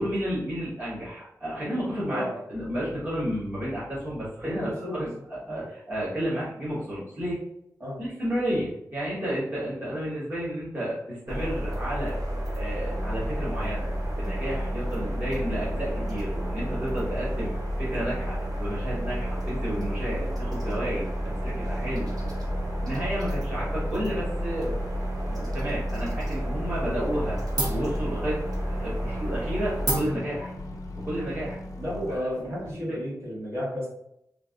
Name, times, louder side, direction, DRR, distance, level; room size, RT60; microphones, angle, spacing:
voice 1, 0.0-2.2 2.5-7.4 8.0-12.2 12.5-13.9 14.2-17.5 17.8-22.1 22.8-24.8 25.3-27.4 27.7-28.4 28.7-30.5 30.9-31.6 32.7-33.0, equal, 25° right, -10 dB, 1.2 m, -31 dB
voice 2, 4.4-5.1 5.5-5.7 7.8-8.0 26.8-27.0 31.8-33.9, equal, 45° right, -8 dB, 1.4 m, -32 dB
sound 1, 11.3-30.0, equal, 70° right, 0.7 m, -31 dB
sound 2, 12.9-32.2, left 1 dB, 60° left, 0.5 m, -40 dB
sound 3, 26.2-26.5 26.8-27.2 27.5-32.7, right 1 dB, 90° right, 1.0 m, -35 dB
3.2 x 2.5 x 2.3 m, 0.78 s
wide cardioid pair, 110°, 7 cm